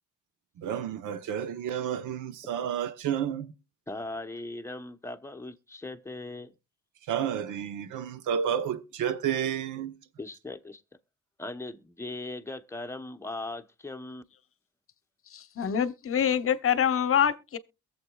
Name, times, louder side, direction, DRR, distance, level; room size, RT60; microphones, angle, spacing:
voice 1, 0.6-3.5 7.1-9.9, right 9 dB, 80° right, 1.0 m, -31 dB
voice 2, 3.9-6.5 10.2-10.8 11.4-14.2, left 2 dB, 10° left, 0.9 m, -39 dB
voice 3, 15.3-17.6, left 8 dB, 45° left, 0.9 m, -25 dB
22.5 x 7.5 x 2.3 m
cardioid pair, 90°, 30 cm